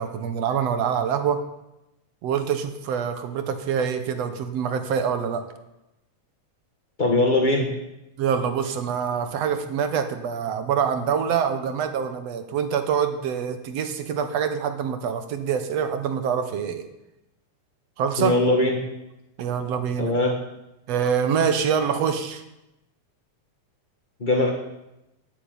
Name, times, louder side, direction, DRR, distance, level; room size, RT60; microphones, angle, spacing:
voice 1, 0.0-1.4 2.2-5.4 8.2-16.8 18.0-18.4 19.4-20.1 20.9-22.4, right 7 dB, 65° right, 8 dB, 2.2 m, -25 dB
voice 2, 7.0-7.7 18.2-18.7 20.0-20.3 24.2-24.5, left 2 dB, 30° left, 1 dB, 0.9 m, -20 dB
14.5 x 8.2 x 9.2 m, 0.92 s
omnidirectional pair, 3.4 m